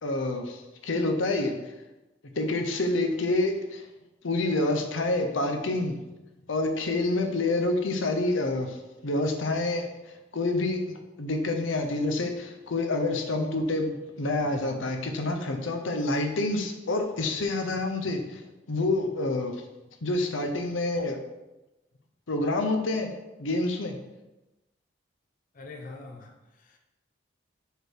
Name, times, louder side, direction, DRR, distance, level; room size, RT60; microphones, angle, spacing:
voice 1, 0.0-1.6 2.4-3.8 4.2-6.0 6.5-8.8 9.0-9.9 10.3-18.4 18.7-19.6 20.0-21.2 22.3-23.1 23.4-24.0, left 2 dB, 85° left, 5 dB, 0.8 m, -27 dB
voice 2, 25.5-26.8, left 3 dB, 45° left, 2 dB, 0.6 m, -44 dB
4.9 x 4.5 x 4.8 m, 1.0 s
head